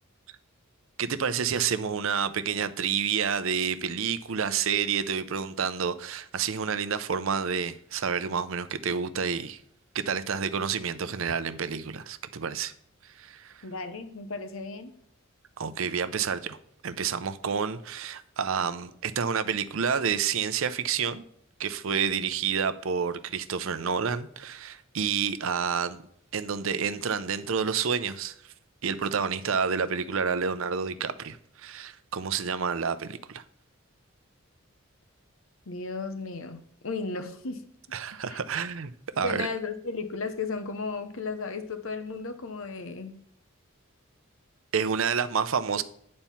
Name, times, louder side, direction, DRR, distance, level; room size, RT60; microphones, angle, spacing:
voice 1, 1.0-9.6 9.9-12.7 13.0-13.6 15.6-16.6 16.8-21.2 21.6-26.0 26.3-28.5 28.8-33.4 37.9-39.5 44.7-45.8, right 6 dB, 70° right, 0.6 m, -29 dB
voice 2, 13.6-14.9 35.7-37.7 38.3-38.4 39.2-43.1, left 4 dB, 70° left, 0.8 m, -35 dB
9.0 x 4.3 x 5.7 m
head